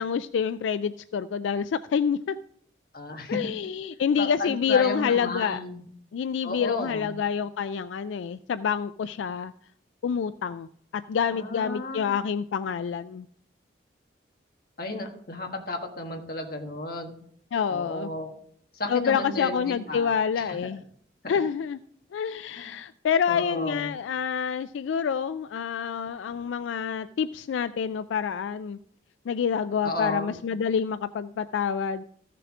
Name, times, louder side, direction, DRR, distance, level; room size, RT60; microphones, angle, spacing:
voice 1, 0.0-2.4 3.3-5.6 6.1-9.5 10.0-13.3 17.5-18.1 18.9-20.8 21.3-21.8 22.1-28.8 29.3-32.0, left 7 dB, 85° left, 13 dB, 0.3 m, -27 dB
voice 2, 2.9-3.4 4.2-5.8 6.4-7.2 11.3-12.2 14.8-17.1 17.7-18.4 18.7-20.6 21.2-21.4 22.6-22.7 23.3-24.0 29.8-30.4, left 2 dB, 50° left, 3 dB, 1.5 m, -33 dB
14.5 x 6.8 x 3.6 m, 0.63 s
head